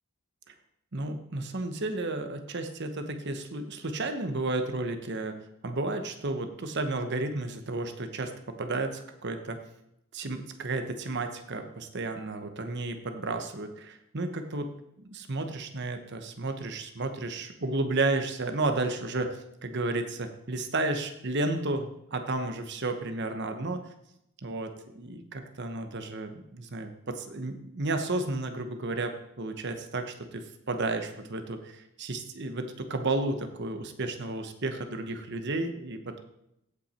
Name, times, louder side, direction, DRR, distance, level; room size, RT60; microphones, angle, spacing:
voice 1, 0.9-5.4 5.6-9.6 10.1-14.7 15.0-23.9 24.4-36.2, right 2 dB, 50° right, 7 dB, 1.0 m, -32 dB
16.0 x 5.9 x 4.3 m, 0.80 s
head